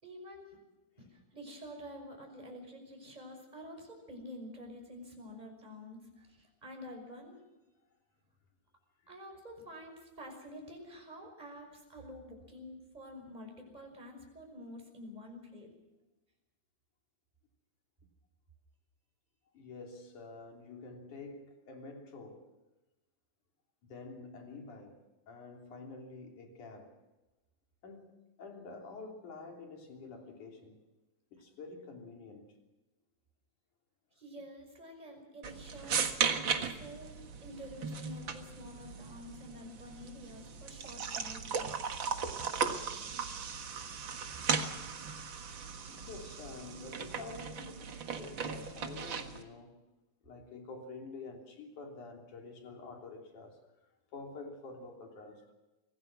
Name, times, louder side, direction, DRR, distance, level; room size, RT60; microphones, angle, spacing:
voice 1, 0.0-0.6 1.0-7.4 9.1-15.7 34.2-37.1 37.4-41.7, equal, 10° right, 5.7 m, -49 dB
voice 2, 19.5-22.5 23.8-27.0 27.8-30.8 31.3-32.6 45.9-49.8 50.2-53.6 54.1-55.5, left 3 dB, 70° left, 4.7 m, -48 dB
sound 1, 35.4-49.4, right 6 dB, 45° right, 1.9 m, -37 dB
25.5 x 18.0 x 6.2 m
omnidirectional pair, 3.7 m